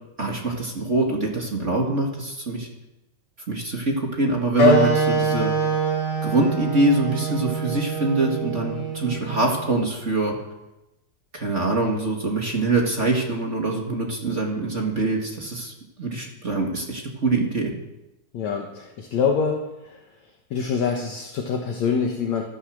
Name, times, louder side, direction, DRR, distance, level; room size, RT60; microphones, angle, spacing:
voice 1, 0.2-2.7 3.5-5.5 6.2-10.3 11.3-17.7, right 2 dB, 25° right, 0 dB, 1.8 m, -24 dB
Wind instrument woodwind instrument, 4.6-9.7, right 2 dB, 35° left, 4.9 m, -23 dB
voice 2, 18.3-19.6 20.5-22.4, left 6 dB, 60° left, 2 dB, 2.5 m, -25 dB
15.0 x 13.0 x 6.4 m, 0.94 s
omnidirectional pair, 3.8 m